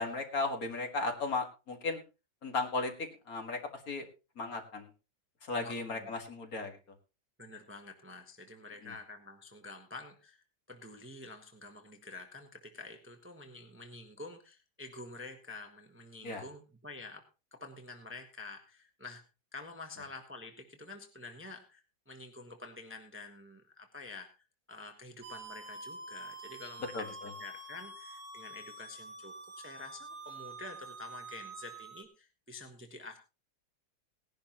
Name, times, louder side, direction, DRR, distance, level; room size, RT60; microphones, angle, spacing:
voice 1, 0.0-2.0 2.4-3.6 3.9-4.1 4.4-4.9 5.4-6.8 8.8-8.9 16.2-16.4 26.9-27.0, left 3 dB, 50° left, 5 dB, 2.2 m, -35 dB
voice 2, 5.6-6.2 7.4-17.3 17.5-19.2 19.5-24.3 24.7-33.2, left 3 dB, 10° right, 5 dB, 1.1 m, -48 dB
sound 1, 25.2-32.0, right 2 dB, 70° right, 2.8 m, -47 dB
18.0 x 11.0 x 3.0 m, 0.30 s
omnidirectional pair, 2.0 m